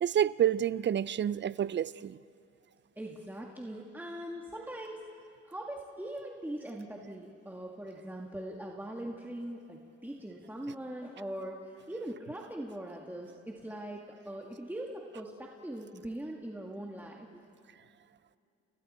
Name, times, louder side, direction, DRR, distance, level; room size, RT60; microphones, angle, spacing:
voice 1, 0.0-2.2, right 10 dB, 40° right, 0.5 m, -28 dB
voice 2, 3.0-5.0 5.4-11.6 11.9-17.3, right 1 dB, 5° right, 1.8 m, -41 dB
29.5 x 29.5 x 4.3 m
cardioid pair, 90°, 30 cm